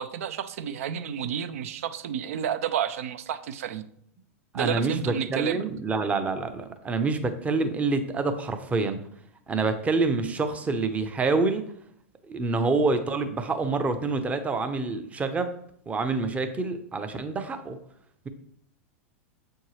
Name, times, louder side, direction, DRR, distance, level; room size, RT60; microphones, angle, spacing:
voice 1, 0.0-3.8 4.5-5.6, right 9 dB, 70° right, 12 dB, 0.6 m, -31 dB
voice 2, 4.5-9.0 9.5-11.6 12.3-15.5 15.9-17.8, right 3 dB, 15° right, 8 dB, 0.7 m, -27 dB
7.4 x 4.5 x 3.1 m, 0.68 s
hypercardioid pair, 110°, 8 cm